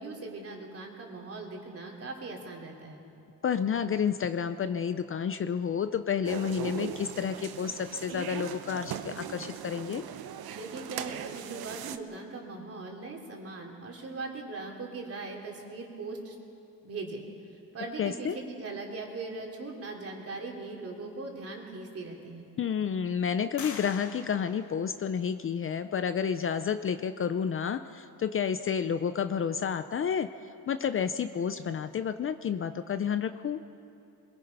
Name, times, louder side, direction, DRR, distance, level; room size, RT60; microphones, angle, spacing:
voice 1, 0.0-3.0 10.5-16.3 16.8-17.2 17.7-22.5, right 3 dB, 40° right, 0 dB, 3.3 m, -40 dB
voice 2, 3.4-10.0 18.0-18.4 22.6-30.3 30.7-33.6, left 7 dB, 35° left, 10 dB, 0.5 m, -30 dB
sound 1, 6.2-12.0, right 9 dB, 85° right, 0.9 m, -39 dB
sound 2, 21.3-21.4 22.0-22.6 23.6-25.5, left 6 dB, 55° left, 1.7 m, -46 dB
23.5 x 22.0 x 5.4 m, 2.6 s
cardioid pair, 140°, 35 cm